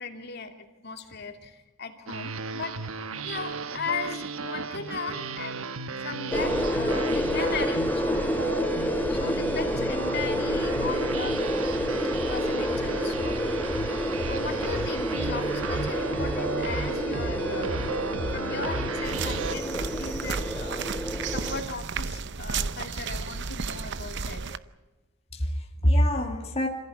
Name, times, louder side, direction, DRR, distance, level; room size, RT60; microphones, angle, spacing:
voice 1, 0.0-2.8 3.2-8.0 9.1-11.4 12.3-17.8 18.3-20.9 21.3-24.4, left 4 dB, 50° left, 2.5 m, -37 dB
sound 1, 2.1-19.6, right 4 dB, 90° right, 1.2 m, -33 dB
sound 2, 6.3-21.6, left 1 dB, 10° left, 0.8 m, -29 dB
sound 3, 19.0-24.6, right 5 dB, 55° right, 0.8 m, -33 dB
voice 2, 22.6-23.1 24.4-24.6 25.3-26.7, equal, 30° left, 2.1 m, -26 dB
26.5 x 16.0 x 9.5 m
head